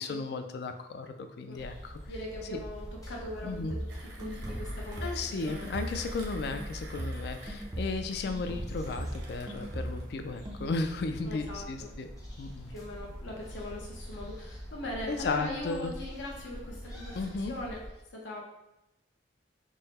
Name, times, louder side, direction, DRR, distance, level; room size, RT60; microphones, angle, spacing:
voice 1, 0.0-1.9 2.5-2.6 3.4-3.7 5.0-12.1 12.4-12.7 15.1-15.9 17.1-17.5, left 3 dB, 55° left, 7 dB, 0.3 m, -35 dB
sound 1, 1.5-17.9, equal, 20° left, 0.7 m, -44 dB
voice 2, 2.1-5.1 5.4-5.7 11.2-11.9 12.7-17.2 17.5-17.8 18.1-18.4, left 1 dB, 75° left, -2 dB, 0.8 m, -40 dB
sound 2, 3.3-6.2 6.4-10.2 10.4-10.9, right 1 dB, 20° right, 0.4 m, -39 dB
Mechanisms, 3.9-10.1, right 2 dB, 70° right, 0.7 m, -51 dB
3.8 x 2.0 x 4.0 m, 0.91 s
head